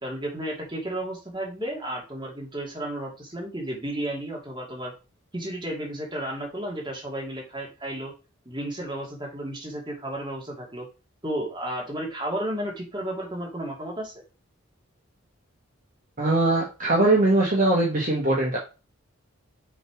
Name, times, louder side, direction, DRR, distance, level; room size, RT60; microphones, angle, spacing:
voice 1, 0.0-4.9 5.3-8.1 8.5-10.9 11.2-14.2, right 1 dB, 20° right, -1 dB, 2.1 m, -33 dB
voice 2, 16.2-18.6, right 2 dB, 40° right, -3 dB, 1.3 m, -21 dB
6.4 x 3.2 x 4.9 m, 0.31 s
head